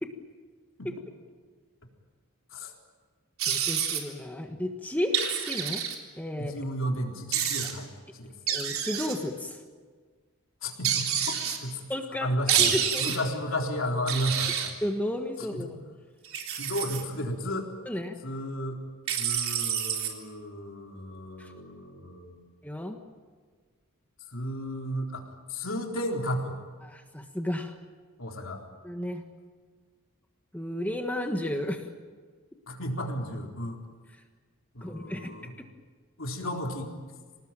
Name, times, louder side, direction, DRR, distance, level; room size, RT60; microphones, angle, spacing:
sound 1, 3.4-4.0 5.1-6.0 7.3-7.7 8.5-9.1 10.8-11.6 12.5-13.2 14.1-14.7 16.2-17.0 19.1-20.1, right 8 dB, 75° right, 3.7 m, -28 dB
voice 1, 3.5-5.8 6.2-6.5 8.5-9.6 11.9-13.1 14.8-15.7 17.8-18.2 21.4-21.5 22.6-23.0 26.8-27.7 28.8-29.2 30.5-31.8 34.8-35.3, left 1 dB, 5° left, 4 dB, 1.5 m, -33 dB
voice 2, 6.4-8.4 10.6-11.8 12.2-14.7 15.4-15.7 16.5-17.7 18.2-18.8 19.2-22.4 24.3-26.6 28.2-28.6 32.7-33.8 34.7-35.5 36.2-37.0, equal, 65° left, 1 dB, 4.0 m, -33 dB
26.5 x 19.0 x 9.1 m, 1.5 s
head